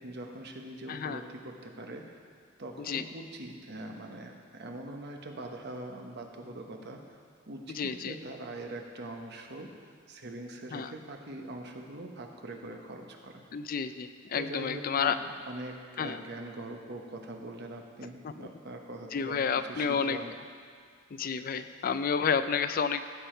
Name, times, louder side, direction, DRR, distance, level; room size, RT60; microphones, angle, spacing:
voice 1, 0.0-2.0 2.6-7.0 7.5-9.7 10.1-13.4 14.3-20.3, right 2 dB, 55° right, 3 dB, 1.1 m, -42 dB
voice 2, 0.9-1.2 2.9-3.0 7.8-8.1 10.7-10.9 13.5-15.2 16.0-16.2 18.4-18.5 19.1-20.2 21.1-23.0, left 6 dB, 45° left, 11 dB, 0.4 m, -30 dB
15.5 x 7.0 x 4.5 m, 2.1 s
head